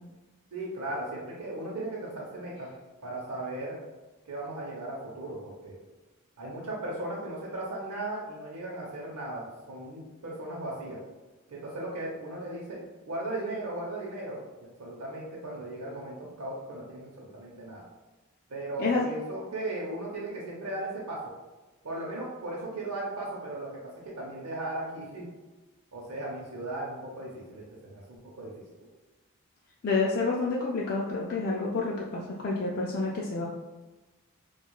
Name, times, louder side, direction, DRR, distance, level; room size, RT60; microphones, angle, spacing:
voice 1, 0.5-2.7 3.0-3.8 4.3-5.7 6.4-11.0 11.5-12.8 13.1-17.8 18.5-21.2 21.8-23.7 24.0-25.3 25.9-28.0 28.3-28.6, right 2 dB, 90° right, -4 dB, 0.7 m, -37 dB
voice 2, 29.8-33.5, left 3 dB, 45° left, -4 dB, 0.4 m, -29 dB
4.5 x 2.3 x 2.3 m, 1.2 s
head